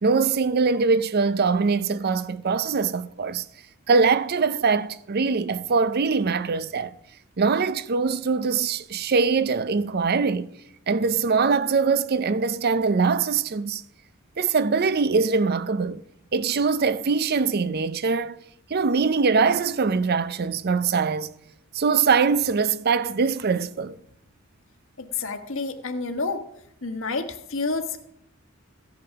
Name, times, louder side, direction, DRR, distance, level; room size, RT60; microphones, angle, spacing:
voice 1, 0.0-3.4 3.9-6.9 7.4-10.5 10.9-13.8 14.4-16.0 16.3-18.4 18.7-21.3 21.7-24.0, right 5 dB, 50° right, 0.6 m, -22 dB
voice 2, 25.0-26.4 26.8-28.0, left 3 dB, 65° left, 1.4 m, -29 dB
15.5 x 8.7 x 5.8 m
head